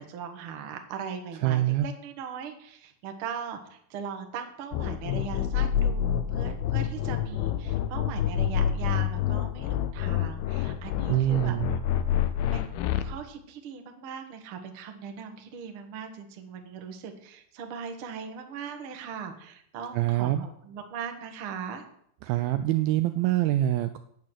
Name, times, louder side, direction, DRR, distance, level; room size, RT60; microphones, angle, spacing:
voice 1, 0.0-11.6 12.5-12.7 13.0-21.8, right 7 dB, 60° right, 5 dB, 1.4 m, -39 dB
voice 2, 1.4-1.9 11.1-11.8 19.9-20.5 22.2-24.0, right 14 dB, 80° right, 10 dB, 2.2 m, -25 dB
sound 1, 4.7-13.0, left 10 dB, 85° left, 2.7 m, -27 dB
10.5 x 8.9 x 6.3 m, 0.68 s
omnidirectional pair, 4.7 m